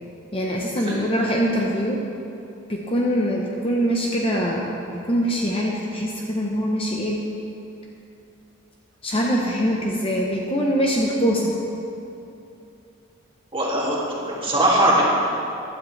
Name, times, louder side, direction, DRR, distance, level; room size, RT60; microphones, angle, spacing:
voice 1, 0.3-2.0 2.7-4.8 5.1-7.2 9.0-11.5, equal, 25° left, -2 dB, 0.8 m, -23 dB
voice 2, 13.5-15.1, right 1 dB, 25° right, -5 dB, 2.3 m, -21 dB
15.0 x 12.0 x 3.3 m, 2.7 s
head